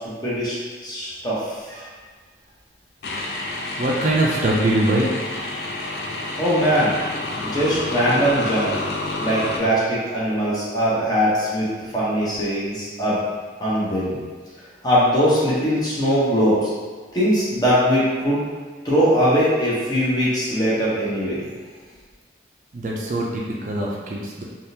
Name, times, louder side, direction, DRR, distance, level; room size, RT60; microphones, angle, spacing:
voice 1, 0.2-0.6 0.8-1.8 6.4-7.0 7.4-8.7 9.2-13.2 13.6-14.2 14.8-16.7 17.1-18.4 18.8-21.4, equal, 20° left, -9 dB, 0.9 m, -21 dB
sound 1, 3.0-9.6, left 2 dB, 60° left, 0.5 m, -29 dB
voice 2, 3.7-5.1 22.7-24.4, right 1 dB, 45° right, -3 dB, 0.4 m, -22 dB
3.5 x 2.4 x 2.7 m, 1.5 s
head